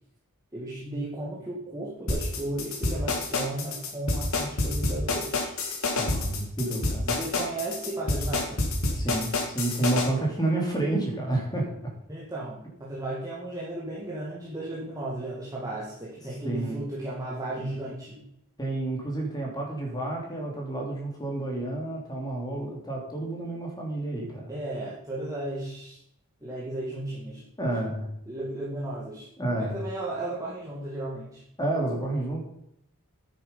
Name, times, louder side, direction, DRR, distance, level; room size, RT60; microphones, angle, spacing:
voice 1, 0.5-5.5 7.1-8.6 12.1-18.2 24.5-26.0 26.4-27.8 28.3-29.3 29.6-31.4, right 1 dB, 15° right, -6 dB, 2.0 m, -35 dB
sound 1, 2.1-10.1, left 2 dB, 70° left, 2.5 m, -27 dB
voice 2, 5.9-7.2 8.9-11.7 16.4-16.8 18.6-24.5 27.6-28.1 29.4-29.8 31.6-32.4, right 2 dB, 20° left, 0 dB, 3.1 m, -30 dB
9.9 x 9.7 x 5.4 m, 0.77 s
head